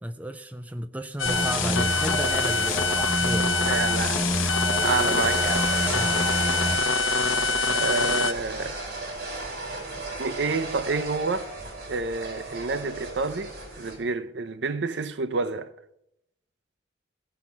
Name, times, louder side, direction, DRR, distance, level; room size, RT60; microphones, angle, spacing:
voice 1, 0.0-3.5 5.9-6.3, right 1 dB, 5° right, 0.3 m, -34 dB
sound 1, 1.2-8.3, left 4 dB, 85° left, 0.9 m, -25 dB
sound 2, 1.2-6.8, equal, 10° left, 0.8 m, -28 dB
voice 2, 3.7-5.7 7.7-8.8 10.2-11.5 11.9-15.7, right 4 dB, 60° right, 0.6 m, -29 dB
sound 3, 5.2-14.0, right 2 dB, 45° right, 4.1 m, -35 dB
16.5 x 5.8 x 5.9 m
head